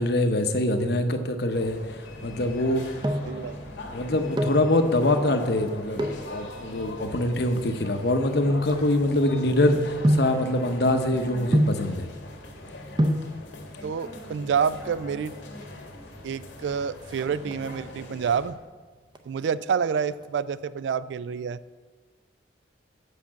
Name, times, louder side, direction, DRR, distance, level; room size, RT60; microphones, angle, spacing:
voice 1, 0.0-1.8 2.2-2.8 3.4-3.5 3.9-12.1, left 1 dB, 60° left, 7 dB, 0.8 m, -24 dB
sound 1, 1.5-18.5, left 1 dB, 80° left, 1.7 m, -41 dB
sound 2, 2.6-3.4 4.2-4.7 5.9-6.3 7.0-9.4 10.0-10.4 11.5-11.9 12.7-12.8 13.0-13.3 14.5-15.0 15.3-15.4 15.6-15.8 16.1-16.5 16.8-17.9 18.3-18.7 19.1-20.3 20.5-20.6, equal, 25° right, 0.6 m, -27 dB
voice 2, 3.2-3.6 13.8-15.4 16.2-18.6 19.3-21.6, right 6 dB, 70° right, 17 dB, 0.3 m, -28 dB
8.2 x 5.8 x 7.4 m, 1.4 s
head